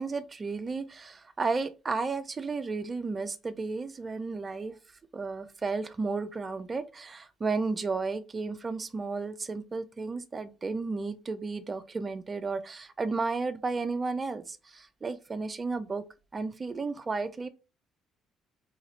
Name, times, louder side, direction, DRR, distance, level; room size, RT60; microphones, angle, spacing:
voice 1, 0.0-4.7 5.1-16.0 16.3-17.5, right 4 dB, 35° right, 0.5 m, -33 dB
3.9 x 3.3 x 2.8 m
hypercardioid pair, 55°, 0 cm